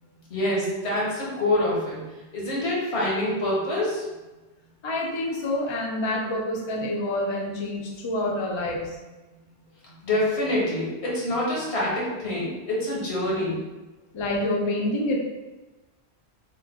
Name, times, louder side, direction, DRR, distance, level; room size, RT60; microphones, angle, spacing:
voice 1, 0.3-2.0 2.3-4.0 9.8-13.6, left 1 dB, 85° left, -5 dB, 1.3 m, -26 dB
voice 2, 4.8-8.9 14.1-15.2, left 1 dB, 45° left, -1 dB, 0.4 m, -27 dB
3.0 x 2.1 x 3.5 m, 1.1 s
omnidirectional pair, 1.1 m